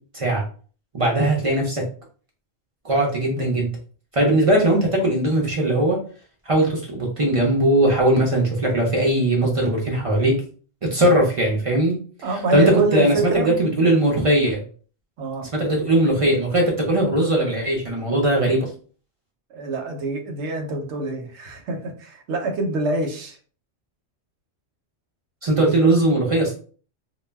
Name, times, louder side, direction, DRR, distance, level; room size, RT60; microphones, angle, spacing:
voice 1, 0.9-1.8 2.8-3.7 4.1-6.0 6.5-10.4 10.8-12.0 12.5-14.6 15.5-18.6 25.4-26.5, right 1 dB, 45° right, -2 dB, 0.4 m, -19 dB
voice 2, 12.2-13.5 15.2-15.5 19.5-23.4, right 3 dB, 80° right, 3 dB, 0.9 m, -26 dB
2.2 x 2.0 x 3.3 m, 0.41 s
omnidirectional pair, 1.1 m